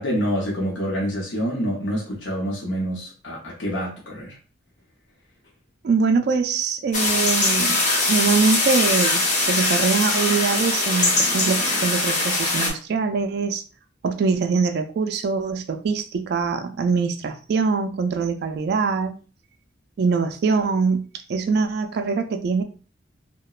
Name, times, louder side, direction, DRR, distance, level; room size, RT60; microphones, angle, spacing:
voice 1, 0.0-4.3, equal, 75° left, -4 dB, 0.7 m, -27 dB
voice 2, 5.8-13.6 14.0-19.2 20.0-22.6, right 5 dB, 60° right, 6 dB, 0.3 m, -23 dB
sound 1, 6.9-12.7, left 2 dB, 40° left, 0.8 m, -21 dB
2.9 x 2.1 x 2.3 m, 0.37 s
head